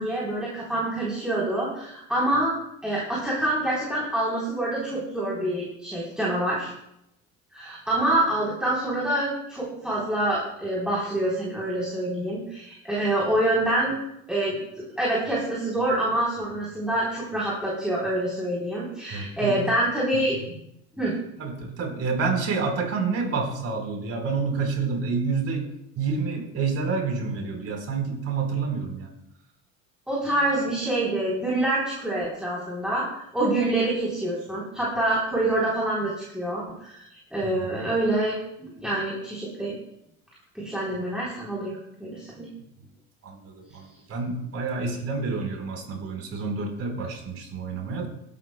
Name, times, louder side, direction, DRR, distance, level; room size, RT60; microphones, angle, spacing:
voice 1, 0.0-2.5 2.8-6.7 7.5-14.0 14.3-20.4 21.0-21.1 30.1-39.8 40.5-42.5, right 1 dB, ahead, -7 dB, 3.7 m, -26 dB
voice 2, 19.1-19.6 21.4-29.1 37.4-37.7 43.2-48.1, right 4 dB, 45° right, 2 dB, 4.1 m, -28 dB
22.5 x 11.5 x 2.2 m, 0.77 s
supercardioid pair, 105°, 33 cm